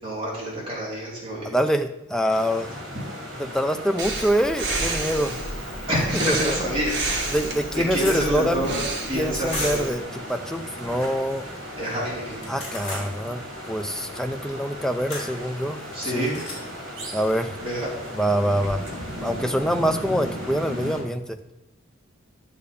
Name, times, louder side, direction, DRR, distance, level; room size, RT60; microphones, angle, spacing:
voice 1, 0.0-1.6 5.9-7.4 7.7-8.8 9.1-9.9 11.8-12.5 15.9-16.4 17.6-17.9, equal, 25° right, -6 dB, 3.4 m, -28 dB
voice 2, 1.4-2.7 3.4-5.4 6.2-6.7 7.3-8.6 9.1-11.5 12.5-16.4 17.1-17.6 18.1-18.8 19.2-21.4, equal, 5° left, 7 dB, 0.4 m, -25 dB
sound 1, 2.3-21.0, equal, 70° right, 3.3 m, -36 dB
Breathing, 4.0-10.0, right 2 dB, 55° right, 1.7 m, -31 dB
sound 2, 7.7-8.2 9.5-10.0 12.3-13.1 15.1-15.3 16.2-16.6, left 2 dB, 35° left, 4.1 m, -33 dB
10.5 x 6.7 x 5.2 m, 0.93 s
head